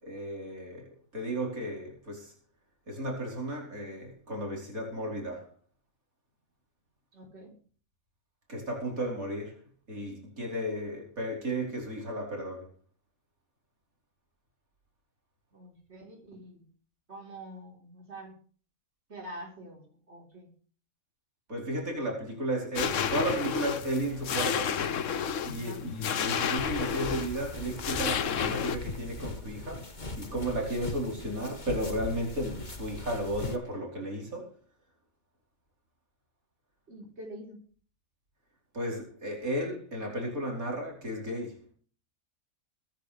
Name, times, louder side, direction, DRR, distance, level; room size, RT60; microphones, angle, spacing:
voice 1, 0.0-2.3 2.9-5.5 8.5-9.6 9.9-12.7 21.5-24.8 25.4-29.9 30.2-34.5 38.7-41.6, right 1 dB, 85° right, 5.2 m, -34 dB
voice 2, 7.1-7.5 15.5-16.6 17.1-18.4 19.1-20.5 25.5-25.8 36.9-37.6, right 1 dB, 50° right, 4.4 m, -46 dB
sound 1, 22.8-28.8, left 7 dB, 65° left, 1.3 m, -31 dB
sound 2, 26.6-33.6, left 2 dB, 35° left, 1.9 m, -40 dB
23.0 x 10.5 x 3.4 m
omnidirectional pair, 1.4 m